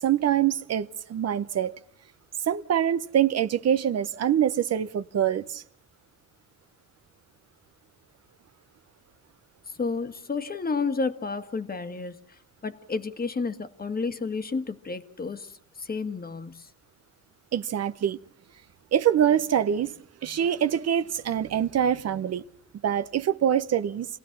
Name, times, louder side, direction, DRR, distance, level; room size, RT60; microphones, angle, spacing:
voice 1, 0.0-1.7 2.5-5.6 17.5-18.2 18.9-19.9 20.2-22.4 22.8-24.1, right 9 dB, 55° right, 0.9 m, -24 dB
voice 2, 9.8-12.2 12.6-15.5 15.8-16.7, left 4 dB, 30° left, 1.6 m, -31 dB
27.5 x 16.5 x 5.9 m
cardioid pair, 90°, 30 cm